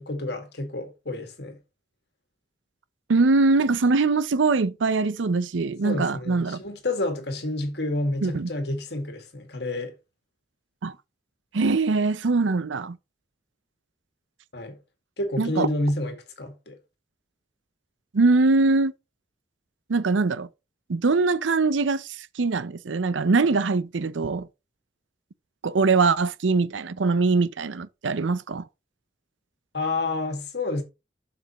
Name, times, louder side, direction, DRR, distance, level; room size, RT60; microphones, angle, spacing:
voice 1, 0.0-1.6 5.8-9.9 14.5-14.8 15.2-16.8 29.7-30.8, left 2 dB, 60° left, 2.0 m, -29 dB
voice 2, 3.1-6.6 8.2-8.5 10.8-11.0 11.5-13.0 15.4-15.7 18.1-18.9 19.9-20.5 20.9-24.5 25.6-28.7, right 3 dB, 85° right, 0.6 m, -22 dB
7.6 x 6.9 x 3.0 m
head